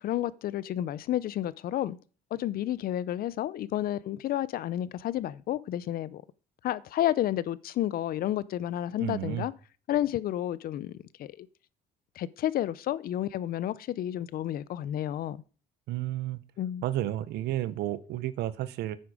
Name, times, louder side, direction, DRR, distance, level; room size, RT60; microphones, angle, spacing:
voice 1, 0.0-2.0 2.3-6.2 6.6-9.5 9.9-11.5 12.2-15.4 16.6-16.8, left 12 dB, 60° left, 0.6 m, -31 dB
voice 2, 9.0-9.5 15.9-16.4 16.8-19.0, right 14 dB, 80° right, 1.0 m, -32 dB
9.7 x 9.0 x 4.9 m
cardioid pair, 110°, 17 cm